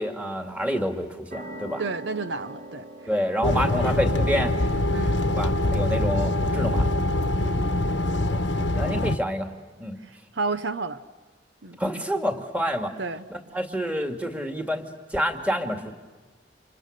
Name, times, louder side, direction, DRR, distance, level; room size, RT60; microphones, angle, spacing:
voice 1, 0.0-1.8 3.1-4.5 5.4-6.9 8.3-8.4 8.8-9.5 9.8-10.0 11.8-12.9 13.3-14.8 15.1-15.9, equal, 10° right, 4 dB, 2.3 m, -28 dB
sound 1, 1.3-8.5, right 1 dB, 50° right, 5.4 m, -45 dB
voice 2, 1.8-2.9 3.7-3.8 4.9-5.3 5.9-6.1 7.4-7.7 8.8-9.0 10.3-11.0 11.6-11.8 13.0-13.3, right 3 dB, 75° right, 12 dB, 0.9 m, -32 dB
sound 2, 3.4-9.2, left 1 dB, 75° left, 1.2 m, -24 dB
30.0 x 27.5 x 6.7 m, 1.3 s
head